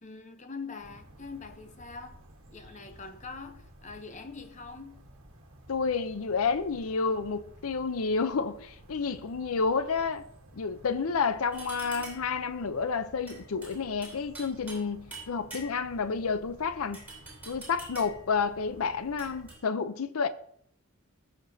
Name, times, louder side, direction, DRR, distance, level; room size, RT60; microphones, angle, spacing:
voice 1, 0.0-2.2 2.5-5.1, left 4 dB, 35° left, 0.7 m, -43 dB
sound 1, 0.8-19.6, right 1 dB, 65° right, 1.3 m, -54 dB
voice 2, 5.7-10.2 10.5-17.0 17.5-20.3, left 5 dB, 80° left, 0.6 m, -30 dB
sound 2, 11.5-12.4 13.3-14.9 15.1-16.0 16.9-18.3 19.2-19.6, right 2 dB, 10° right, 3.4 m, -45 dB
16.5 x 6.0 x 2.7 m
head